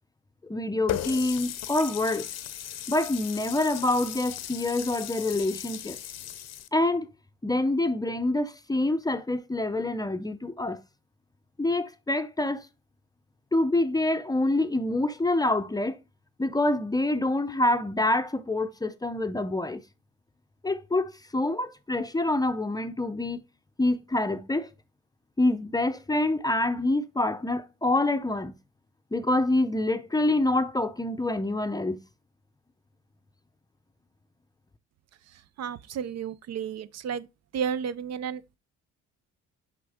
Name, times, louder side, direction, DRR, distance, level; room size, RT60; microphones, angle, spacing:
voice 1, 0.4-2.3 2.9-6.0 6.7-7.1 7.4-10.8 11.6-12.7 13.5-16.0 16.4-19.8 20.6-23.4 23.8-24.7 25.4-28.5 29.1-32.0, left 2 dB, 15° left, 0.5 m, -26 dB
Water tap faucet, 0.9-6.7, left 11 dB, 60° left, 0.6 m, -36 dB
voice 2, 35.6-37.3 37.5-38.6, right 7 dB, 60° right, 0.5 m, -32 dB
6.2 x 5.1 x 3.5 m
cardioid pair, 90°, 30 cm